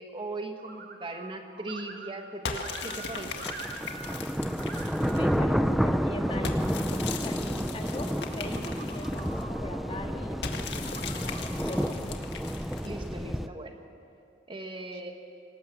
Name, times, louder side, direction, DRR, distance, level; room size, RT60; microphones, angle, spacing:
voice 1, 0.0-3.5 12.8-13.8 14.5-15.1, right 2 dB, 30° right, 4 dB, 1.5 m, -39 dB
sound 1, 0.6-1.3 1.6-4.2 4.5-5.3 5.9-6.9 7.8-9.6 10.7-11.9, right 5 dB, 60° right, 1.6 m, -45 dB
sound 2, 2.4-5.3 6.4-9.4 10.4-13.1, left 5 dB, 70° left, 1.8 m, -39 dB
sound 3, 3.2-13.5, equal, ahead, 0.6 m, -30 dB
voice 2, 4.9-12.2 14.9-15.0, left 1 dB, 30° left, 2 dB, 2.0 m, -41 dB
25.5 x 19.0 x 7.4 m, 2.6 s
head